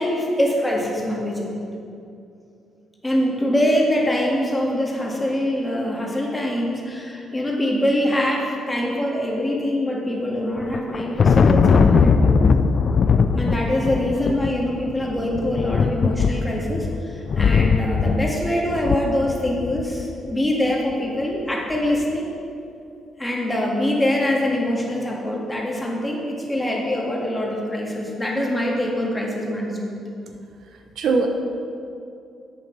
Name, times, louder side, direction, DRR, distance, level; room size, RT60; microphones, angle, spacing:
voice 1, 0.0-1.7 3.0-12.4 13.4-22.3 23.2-30.0, left 1 dB, 15° left, -2 dB, 1.9 m, -24 dB
Thunder, 10.6-20.0, left 5 dB, 50° left, 0.4 m, -20 dB
voice 2, 30.3-31.3, right 4 dB, 70° right, 4 dB, 0.9 m, -24 dB
8.3 x 7.1 x 6.0 m, 2.6 s
cardioid pair, 90°, 0 cm